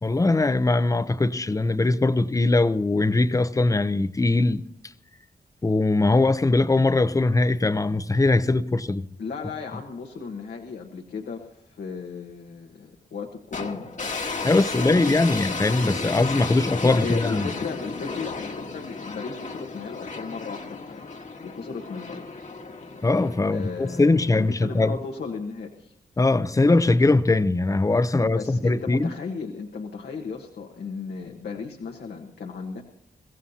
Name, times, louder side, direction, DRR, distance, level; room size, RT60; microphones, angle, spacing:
voice 1, 0.0-4.6 5.6-9.0 14.4-17.5 23.0-25.0 26.2-29.1, left 2 dB, 20° left, 0.7 m, -21 dB
voice 2, 9.2-13.8 14.9-15.2 16.8-21.1 21.4-22.3 23.4-25.9 28.3-32.8, left 5 dB, 85° left, 1.3 m, -35 dB
sound 1, 13.5-24.7, left 4 dB, 50° left, 1.5 m, -34 dB
23.5 x 15.5 x 2.8 m
cardioid pair, 70°, 16 cm